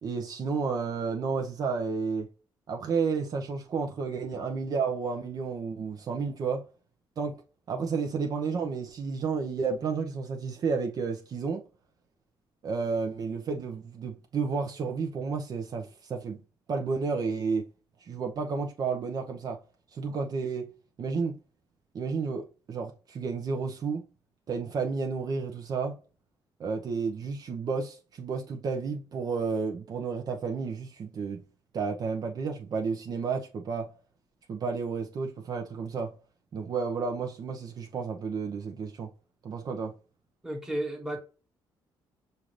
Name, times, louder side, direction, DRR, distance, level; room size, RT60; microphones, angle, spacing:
voice 1, 0.0-2.3 2.7-6.6 7.2-7.4 7.7-11.6 12.6-16.4 16.7-17.6 18.1-19.6 19.9-20.7 21.0-21.4 21.9-24.0 24.5-26.0 26.6-31.4 31.7-33.9 34.5-36.1 36.5-39.1 39.4-39.9, right 5 dB, 50° right, 0.7 m, -31 dB
voice 2, 40.4-41.2, right 1 dB, 5° right, 1.4 m, -33 dB
5.5 x 2.6 x 3.1 m
cardioid pair, 120°, 9 cm